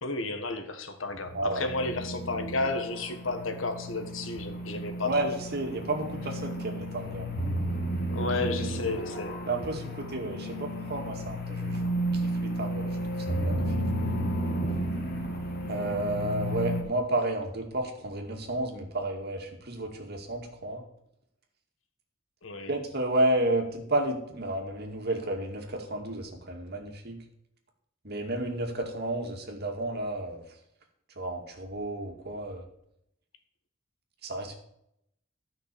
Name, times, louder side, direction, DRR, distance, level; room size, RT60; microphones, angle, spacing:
voice 1, 0.0-5.3 8.1-9.5 22.4-22.7, left 3 dB, 85° left, 7 dB, 1.5 m, -32 dB
sound 1, 1.1-16.8, right 1 dB, 50° left, 2.4 m, -33 dB
voice 2, 1.3-1.7 5.0-7.3 8.6-8.8 9.5-13.0 13.3-13.9 15.7-20.8 22.7-27.2 28.0-30.4 31.2-32.6 34.2-34.6, right 1 dB, 55° right, 2 dB, 2.3 m, -32 dB
13.0 x 6.0 x 7.0 m, 0.76 s
head